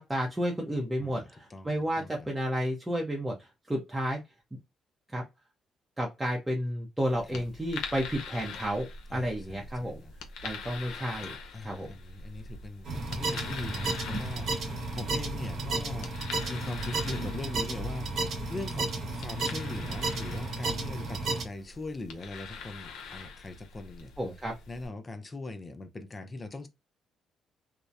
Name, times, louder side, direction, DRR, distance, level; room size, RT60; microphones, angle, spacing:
voice 1, 0.0-4.2 5.1-5.2 6.0-10.0 10.4-11.3 11.6-11.9 24.2-24.5, equal, 10° right, 0.7 m, -32 dB
voice 2, 1.0-2.3 7.3-7.4 9.1-10.1 11.5-24.1 24.7-26.7, left 2 dB, 30° left, 0.5 m, -41 dB
sound 1, 7.0-24.9, left 4 dB, 85° left, 0.6 m, -44 dB
sound 2, 12.8-21.4, right 2 dB, 65° right, 1.0 m, -33 dB
2.7 x 2.0 x 2.3 m
cardioid pair, 90°, 0 cm